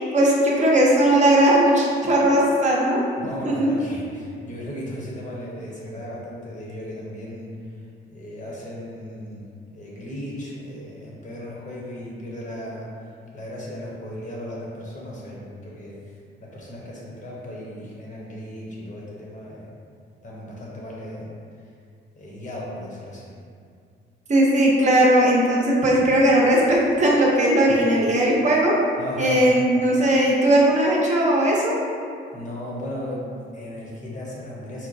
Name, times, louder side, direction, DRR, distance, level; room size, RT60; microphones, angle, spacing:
voice 1, 0.1-3.0 3.4-3.7 24.3-28.7 29.2-31.7, right 1 dB, 35° right, -3 dB, 0.7 m, -18 dB
voice 2, 3.2-7.6 8.1-9.4 9.7-16.1 16.4-19.7 20.2-21.3 22.1-23.3 27.7-28.0 29.0-29.5 32.3-34.9, left 1 dB, 40° left, -5 dB, 0.9 m, -36 dB
4.4 x 2.1 x 2.6 m, 2.3 s
cardioid pair, 90°, 20 cm